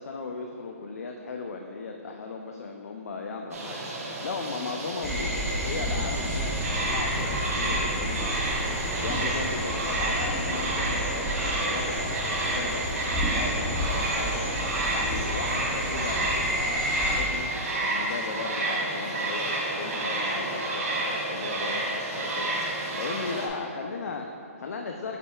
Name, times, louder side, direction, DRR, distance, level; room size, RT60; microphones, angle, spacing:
voice 1, 0.0-8.4 9.0-12.0 12.4-14.5 14.9-25.2, left 4 dB, 80° left, 3 dB, 0.5 m, -37 dB
sound 1, 3.5-23.5, right 2 dB, 70° right, 1.2 m, -30 dB
sound 2, 5.0-17.2, equal, ahead, 0.9 m, -31 dB
7.6 x 5.5 x 2.3 m, 2.6 s
hypercardioid pair, 150°, 8 cm